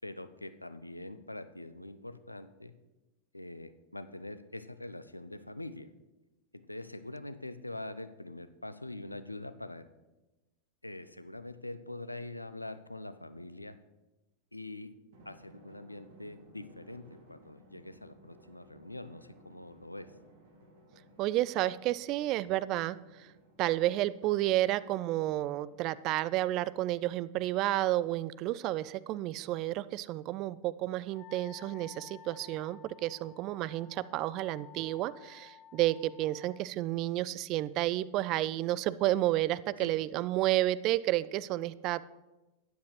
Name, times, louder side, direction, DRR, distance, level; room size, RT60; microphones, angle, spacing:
voice 1, 0.0-2.7 3.3-5.9 6.5-9.9 10.8-13.8 14.5-14.9 15.3-20.1 39.8-39.9, left 2 dB, 85° left, 13 dB, 0.5 m, -44 dB
Drum, 15.1-26.1, equal, 55° right, 2.1 m, -59 dB
voice 2, 21.2-23.3 23.6-42.1, right 15 dB, 40° right, 18 dB, 0.3 m, -31 dB
Wind instrument woodwind instrument, 31.1-36.7, left 9 dB, 45° left, 0.6 m, -54 dB
12.5 x 9.4 x 3.2 m, 1.1 s
figure-of-eight pair, 90°, 0 cm